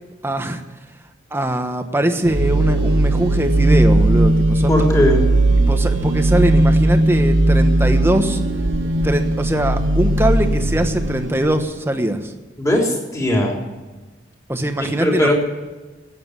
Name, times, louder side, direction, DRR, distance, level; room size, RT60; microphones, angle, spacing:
voice 1, 0.2-0.6 1.3-4.7 5.6-8.4 9.0-12.3 14.5-15.3, right 1 dB, 15° right, 7 dB, 1.2 m, -21 dB
sound 1, 2.2-11.6, right 2 dB, 85° right, 1.3 m, -17 dB
voice 2, 4.7-5.2 12.6-13.6 14.8-15.3, left 1 dB, 15° left, -1 dB, 3.6 m, -18 dB
15.0 x 9.6 x 9.7 m, 1.3 s
head